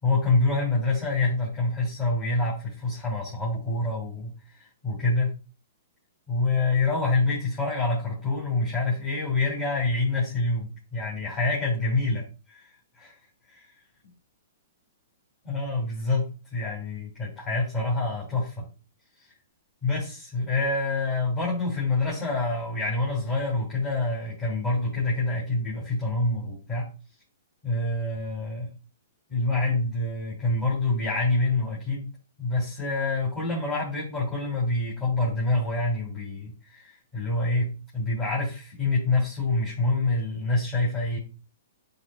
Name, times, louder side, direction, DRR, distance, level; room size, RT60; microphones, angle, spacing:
voice 1, 0.0-4.3 4.8-5.3 6.3-12.6 13.0-13.1 13.5-13.6 15.4-18.6 19.8-26.9 27.6-28.7 29.3-32.1 32.4-37.7 37.9-41.2, left 2 dB, 25° left, -6 dB, 3.1 m, -26 dB
10.5 x 3.8 x 2.4 m, 0.33 s
hypercardioid pair, 125°, 0 cm